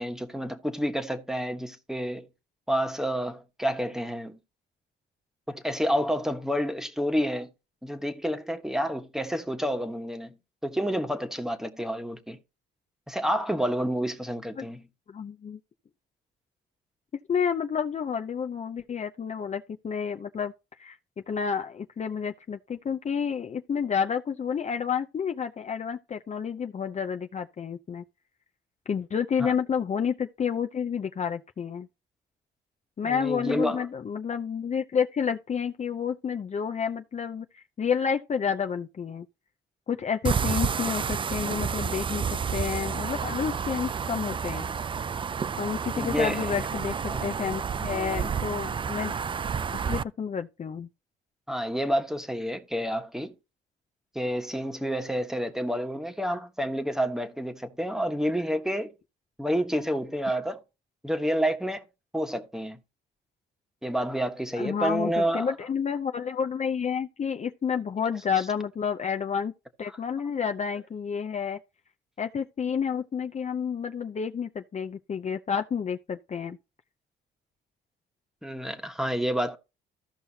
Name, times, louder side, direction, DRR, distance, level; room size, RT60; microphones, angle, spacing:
voice 1, 0.0-2.3 2.7-4.4 5.5-7.5 7.8-10.3 10.6-12.4 13.1-14.8 29.4-29.5 33.0-33.8 45.9-46.5 47.1-47.3 51.5-53.3 54.1-58.9 59.4-60.6 61.0-61.8 62.1-62.8 63.8-65.5 78.4-79.6, equal, ahead, 1.3 m, -29 dB
voice 2, 15.1-15.6 17.3-20.5 20.8-21.0 21.3-28.0 28.9-31.9 33.0-39.3 39.9-44.7 45.6-49.2 49.7-50.9 64.6-69.5 69.8-71.6 72.2-76.6, left 7 dB, 35° left, 0.6 m, -30 dB
sound 1, 40.2-50.0, right 6 dB, 25° right, 0.3 m, -30 dB
14.5 x 5.5 x 2.8 m
cardioid pair, 90°, 20 cm